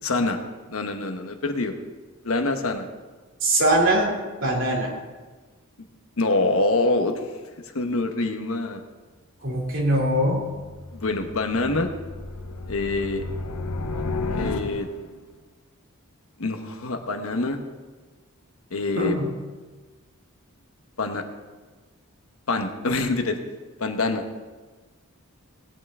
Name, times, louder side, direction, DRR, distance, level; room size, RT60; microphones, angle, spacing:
voice 1, 0.0-0.4 0.7-1.7 2.2-2.9 6.2-7.1 7.7-8.8 10.9-11.9 12.7-13.2 14.4-14.9 16.4-17.6 18.7-19.2 21.0-21.2 22.5-23.4 23.8-24.2, left 2 dB, 70° left, 6 dB, 1.1 m, -25 dB
voice 2, 3.4-4.1 4.4-4.9 9.4-10.4 18.9-19.3, right 1 dB, 55° right, -2 dB, 2.8 m, -22 dB
sound 1, 10.3-15.2, left 3 dB, 90° left, 1.0 m, -33 dB
18.0 x 9.2 x 3.6 m, 1.3 s
head